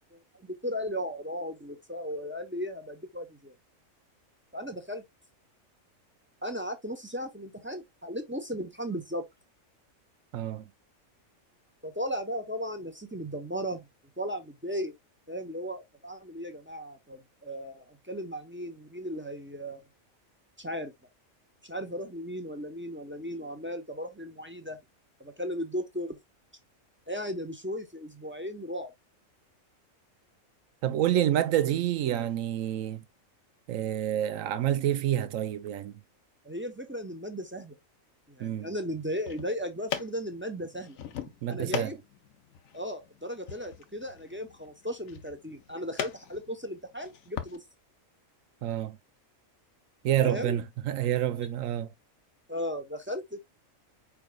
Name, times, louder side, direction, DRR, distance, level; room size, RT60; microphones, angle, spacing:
voice 1, 0.1-3.5 4.5-5.0 6.4-9.2 11.8-13.9 14.2-14.9 15.3-19.9 20.6-20.9 21.6-24.8 25.2-26.2 27.1-28.9 36.4-37.8 38.3-41.0 41.5-42.0 42.7-47.6 50.2-50.6 52.5-53.4, equal, 10° right, 0.7 m, -36 dB
voice 2, 10.3-10.6 30.8-33.0 33.7-35.9 38.4-38.7 41.4-42.0 48.6-49.0 50.0-51.9, right 11 dB, 80° right, 1.0 m, -28 dB
sound 1, 39.0-47.6, left 9 dB, 80° left, 1.2 m, -41 dB
4.9 x 4.7 x 2.2 m
omnidirectional pair, 1.4 m